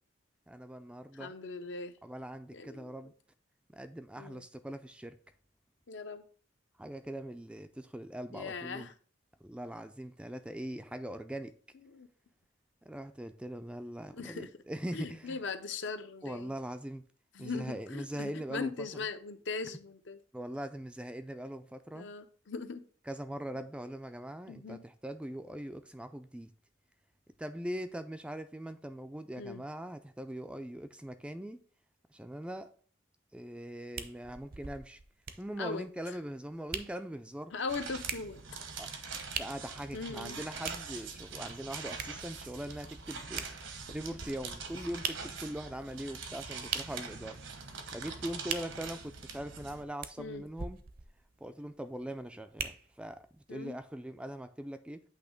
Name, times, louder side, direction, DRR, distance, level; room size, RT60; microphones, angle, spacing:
voice 1, 0.5-1.3 2.0-3.1 3.7-5.2 6.8-8.9 9.4-11.5 12.9-15.4 16.2-17.1 17.4-19.0 20.3-22.1 23.1-26.5 27.4-31.6 32.1-32.7 33.3-35.0 35.4-37.5 38.8-38.9 39.4-43.5 43.9-47.4 47.9-50.8 51.4-55.0, right 1 dB, 5° right, 0.3 m, -41 dB
voice 2, 1.1-1.9 2.5-2.9 4.2-4.4 5.9-6.2 8.3-8.9 11.9-12.1 14.1-14.5 14.9-16.5 17.3-20.2 21.9-22.8 24.5-24.8 29.4-29.6 35.6-35.8 37.5-38.4 39.9-40.4 50.2-50.4 53.5-53.8, left 4 dB, 65° left, 0.6 m, -40 dB
sound 1, 34.0-53.2 53.8-53.9, right 6 dB, 50° right, 0.6 m, -44 dB
sound 2, 37.7-49.8, right 5 dB, 75° right, 1.1 m, -44 dB
8.2 x 3.1 x 5.0 m
head